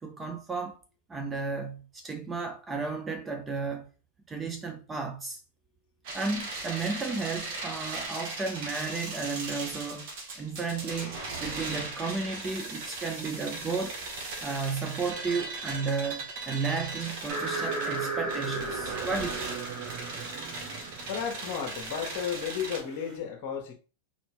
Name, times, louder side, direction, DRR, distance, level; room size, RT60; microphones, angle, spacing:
voice 1, 0.0-0.8 1.1-3.9 4.3-5.4 6.1-10.1 10.4-14.0 14.4-19.5, right 4 dB, 20° right, 0.6 m, -33 dB
sound 1, 6.0-22.8, right 3 dB, 60° right, 1.5 m, -38 dB
sound 2, 17.3-23.1, right 3 dB, 35° right, 1.7 m, -36 dB
voice 2, 21.1-23.7, left 7 dB, 50° left, 1.2 m, -33 dB
3.9 x 3.4 x 3.2 m
hypercardioid pair, 105°, 0 cm